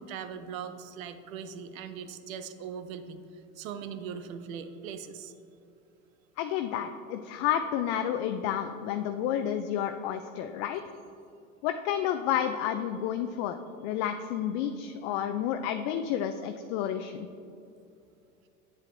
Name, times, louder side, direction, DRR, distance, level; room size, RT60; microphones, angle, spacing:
voice 1, 0.0-3.2 3.6-5.3, right 7 dB, 70° right, 10 dB, 0.7 m, -40 dB
voice 2, 6.4-10.8 11.6-17.3, left 10 dB, 55° left, 7 dB, 0.5 m, -30 dB
8.3 x 7.3 x 2.6 m, 2.6 s
hypercardioid pair, 85°, 42 cm